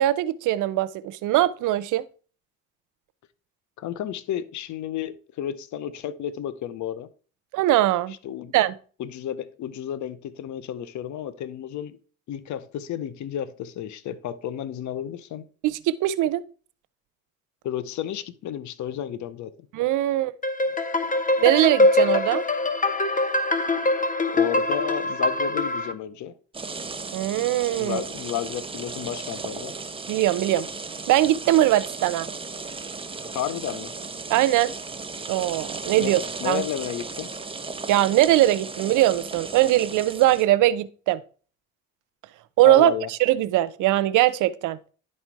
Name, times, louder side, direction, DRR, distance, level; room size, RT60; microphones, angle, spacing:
voice 1, 0.0-2.0 7.5-8.1 8.5-8.7 15.6-16.4 19.7-20.3 21.4-22.4 27.1-28.0 30.1-30.7 31.1-32.3 34.3-34.7 35.3-36.2 36.4-36.6 37.9-41.2 42.6-42.9 43.2-44.8, right 14 dB, 90° right, 0.6 m, -21 dB
voice 2, 3.8-7.1 8.2-8.5 9.0-12.0 12.3-15.5 17.6-19.5 23.6-23.8 24.3-26.3 27.8-29.7 33.2-33.9 35.9-36.1 36.4-37.3 42.6-43.1, left 10 dB, 70° left, 0.7 m, -32 dB
sound 1, 20.4-25.9, left 2 dB, 25° left, 1.0 m, -23 dB
sound 2, 26.5-40.5, right 4 dB, 20° right, 0.9 m, -36 dB
10.5 x 4.3 x 4.6 m
cardioid pair, 90°, 30 cm